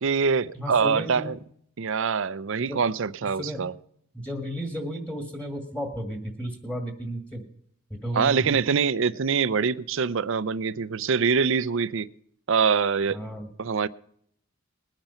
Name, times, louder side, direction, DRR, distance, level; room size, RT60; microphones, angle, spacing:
voice 1, 0.0-1.4 1.8-3.7 8.1-12.1 12.5-13.2 13.6-13.9, right 5 dB, 60° right, 0.5 m, -24 dB
voice 2, 0.5-1.3 2.6-2.8 3.4-3.6 4.1-7.4 7.9-8.6 13.1-13.5, equal, 5° left, 1.8 m, -33 dB
20.0 x 9.0 x 5.6 m
head